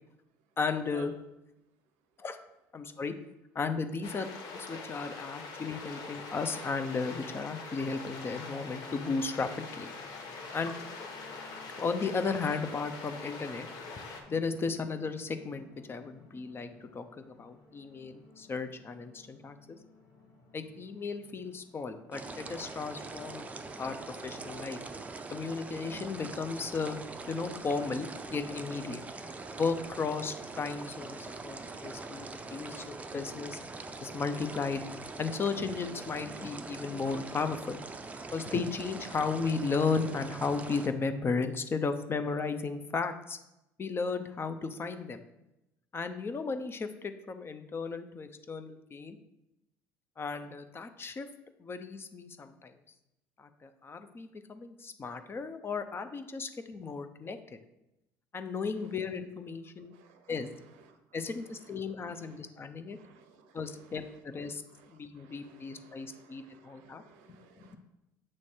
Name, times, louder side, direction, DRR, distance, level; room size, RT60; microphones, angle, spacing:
voice 1, 0.6-1.1 2.2-2.4 2.7-3.1 3.5-9.9 10.5-10.7 11.8-13.7 14.3-19.8 20.5-23.5 23.8-24.0 24.2-24.8 25.3-27.0 27.3-29.0 29.6-33.6 34.0-34.8 35.2-37.8 38.3-43.4 43.8-45.2 45.9-49.2 50.2-51.3 51.6-52.7 53.4-57.6 58.3-59.9 60.3-60.5 61.1-63.0 63.5-64.6 64.9-67.0 67.3-67.8, left 4 dB, 30° left, 8 dB, 0.6 m, -35 dB
sound 1, 4.0-14.2, left 4 dB, 65° left, 0.9 m, -43 dB
sound 2, 9.6-24.7, left 3 dB, 80° left, 2.0 m, -59 dB
sound 3, 22.1-40.9, right 3 dB, 20° right, 0.5 m, -43 dB
voice 2, 59.9-61.0 61.2-61.7 62.0-62.4 62.9-67.8, right 6 dB, 90° right, 7 dB, 0.7 m, -56 dB
7.4 x 3.2 x 4.3 m, 0.91 s
supercardioid pair, 90°, 8 cm